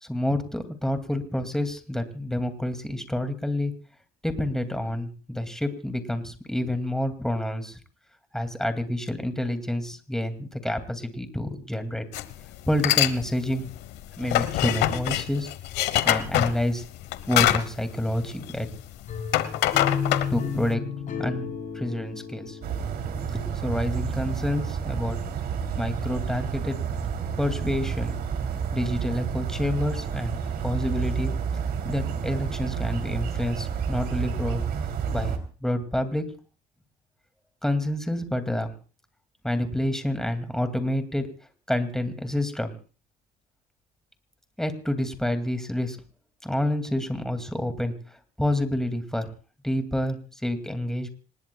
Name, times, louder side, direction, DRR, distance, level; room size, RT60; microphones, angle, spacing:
voice 1, 0.0-3.7 4.2-7.8 8.3-12.1 12.7-13.7 14.2-15.5 16.0-16.8 17.3-18.7 20.3-20.8 21.2-21.5 21.7-22.6 23.3-25.2 25.8-27.1 27.4-28.2 28.7-31.3 31.8-34.6 35.1-35.3 35.6-36.3 37.6-38.7 39.4-41.3 41.7-42.7 44.6-46.0 46.4-49.3 49.6-51.1, left 1 dB, 5° left, 8 dB, 2.4 m, -28 dB
sound 1, 12.1-12.3 12.7-13.2 13.5-18.8 19.1-20.7, left 13 dB, 85° left, 1.1 m, -24 dB
sound 2, 19.1-24.0, left 6 dB, 50° left, 6.5 m, -33 dB
sound 3, 22.6-35.4, right 7 dB, 65° right, 3.1 m, -30 dB
26.5 x 20.0 x 2.3 m, 0.38 s
cardioid pair, 110°, 17 cm